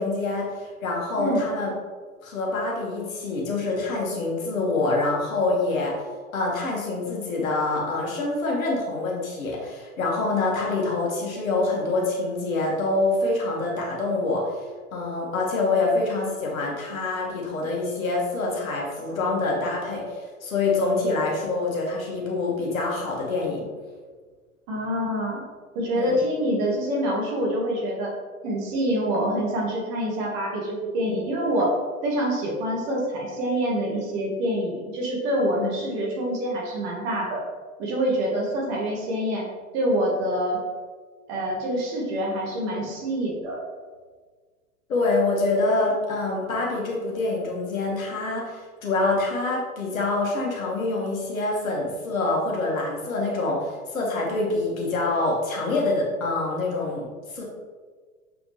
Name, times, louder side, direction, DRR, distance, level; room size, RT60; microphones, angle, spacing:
voice 1, 0.0-1.7 2.2-6.0 6.3-14.5 14.9-23.6 25.9-26.2 35.5-35.7 44.9-57.4, left 2 dB, 65° left, -2 dB, 2.0 m, -26 dB
voice 2, 24.7-25.4 25.8-28.1 28.4-31.8 32.0-37.4 37.8-40.6 41.3-43.6, equal, 35° right, -2 dB, 2.0 m, -26 dB
7.5 x 5.0 x 3.4 m, 1.5 s
figure-of-eight pair, 95°, 44 cm